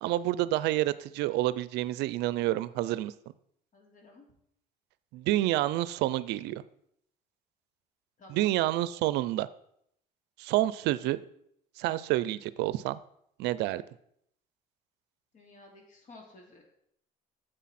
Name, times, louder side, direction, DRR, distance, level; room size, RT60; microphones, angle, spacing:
voice 1, 0.0-3.1 5.1-6.6 8.3-9.5 10.4-11.2 11.8-13.0 13.4-13.8, right 15 dB, 90° right, 17 dB, 0.5 m, -28 dB
voice 2, 3.7-4.3 8.2-8.5 15.3-16.7, left 2 dB, 50° left, 1 dB, 3.2 m, -53 dB
10.0 x 7.9 x 4.2 m, 0.72 s
cardioid pair, 110°, 17 cm